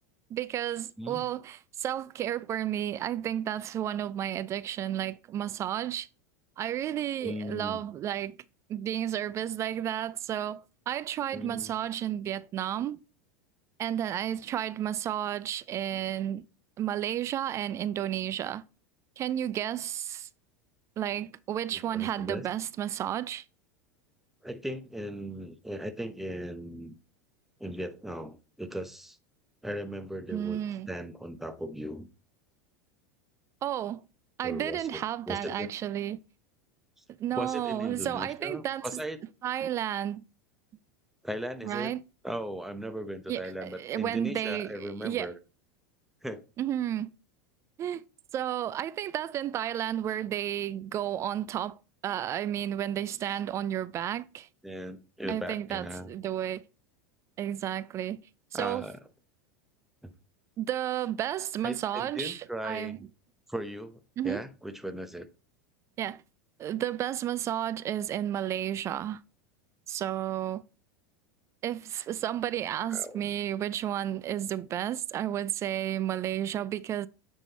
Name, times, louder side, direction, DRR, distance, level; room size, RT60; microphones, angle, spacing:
voice 1, 0.3-6.1 6.6-8.4 8.7-13.0 13.8-16.4 16.8-18.6 19.2-20.3 21.0-23.4 30.3-30.9 33.6-34.0 34.4-36.2 37.2-38.9 39.4-40.2 41.6-42.0 43.3-45.3 46.6-47.1 47.8-48.0 48.3-54.5 55.3-56.6 57.4-58.2 58.5-58.8 60.6-63.0 64.2-64.4 66.0-66.2 66.6-69.2 69.9-70.6 71.6-77.1, right 11 dB, 35° right, 0.3 m, -32 dB
voice 2, 7.2-7.8 11.3-11.7 21.7-22.5 24.4-26.9 27.6-29.2 29.6-30.6 30.9-32.1 34.4-35.7 37.0-37.1 37.3-39.2 41.2-41.9 42.2-45.4 46.2-46.4 54.6-56.1 58.5-59.0 60.0-60.1 61.6-63.0 63.5-65.3 72.9-73.3, equal, 5° right, 0.9 m, -38 dB
9.1 x 3.7 x 4.0 m
hypercardioid pair, 95°, 9 cm